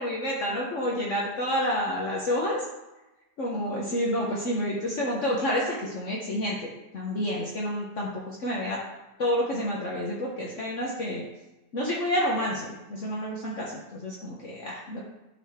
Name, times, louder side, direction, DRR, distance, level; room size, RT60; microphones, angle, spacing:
voice 1, 0.0-2.6 3.4-8.8 9.2-11.2 11.7-15.0, equal, 50° left, -3 dB, 1.3 m, -29 dB
11.5 x 4.0 x 3.6 m, 1.0 s
omnidirectional pair, 1.8 m